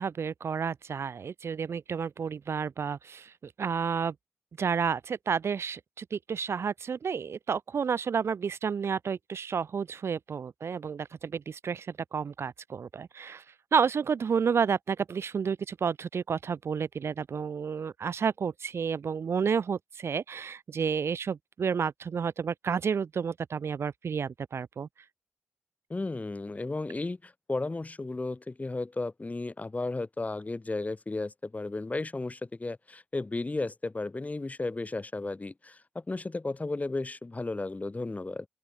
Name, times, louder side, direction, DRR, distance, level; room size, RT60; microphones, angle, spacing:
voice 1, 0.0-4.1 4.6-13.4 13.7-24.9, right 6 dB, 90° right, 0.4 m, -31 dB
voice 2, 25.9-38.5, left 2 dB, 35° left, 0.5 m, -34 dB
open air
cardioid pair, 45°, 4 cm